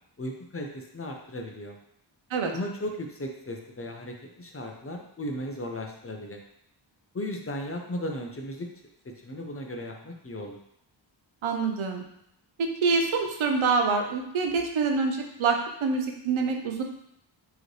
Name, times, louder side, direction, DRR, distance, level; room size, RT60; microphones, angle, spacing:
voice 1, 0.2-1.8 2.5-6.4 7.1-8.7 9.0-10.6, left 1 dB, 30° left, 2 dB, 0.6 m, -36 dB
voice 2, 11.4-12.0 12.8-16.8, right 4 dB, 85° right, 3 dB, 0.7 m, -26 dB
4.7 x 3.1 x 3.2 m, 0.73 s
wide cardioid pair, 90°, 47 cm